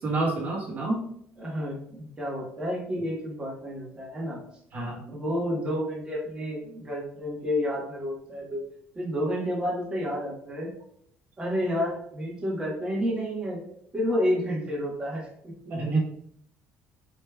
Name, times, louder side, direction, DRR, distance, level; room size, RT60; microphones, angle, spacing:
voice 1, 0.0-1.0 4.7-5.0 15.6-16.0, right 2 dB, 40° right, -2 dB, 1.4 m, -28 dB
voice 2, 1.4-4.4 5.1-8.6 8.9-10.7 11.4-13.6 13.9-15.5, equal, 20° right, -5 dB, 1.3 m, -30 dB
6.6 x 3.1 x 2.3 m, 0.67 s
cardioid pair, 135°, 5 cm